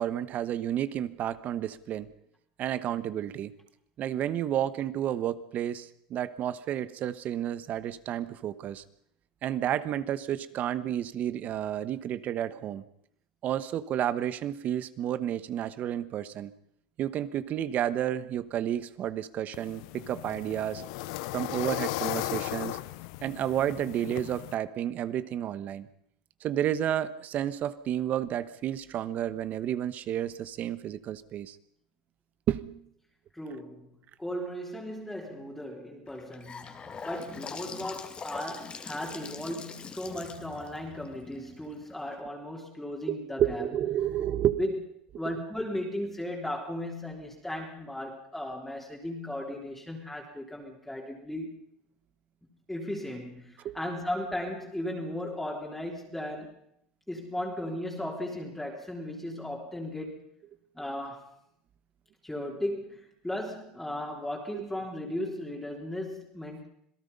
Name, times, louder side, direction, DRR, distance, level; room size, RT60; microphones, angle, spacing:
voice 1, 0.0-2.1 2.6-3.5 4.0-8.8 9.4-12.8 13.4-16.5 17.0-20.8 21.3-22.8 23.2-25.9 26.4-31.6 32.5-32.8 43.0-44.6 53.6-53.8 64.5-64.6, right 11 dB, 45° right, 15 dB, 1.2 m, -31 dB
sound 1, 19.5-24.5, left 18 dB, 70° left, 0.8 m, -36 dB
voice 2, 33.3-33.9 34.2-43.7 44.6-44.8 45.2-51.5 52.7-56.6 57.1-60.2 60.8-61.3 62.2-66.7, left 1 dB, 5° left, -1 dB, 3.6 m, -36 dB
Gurgling / Sink (filling or washing) / Bathtub (filling or washing), 36.1-42.1, left 5 dB, 25° left, 2.6 m, -43 dB
27.0 x 18.0 x 5.5 m, 0.72 s
supercardioid pair, 105°, 4 cm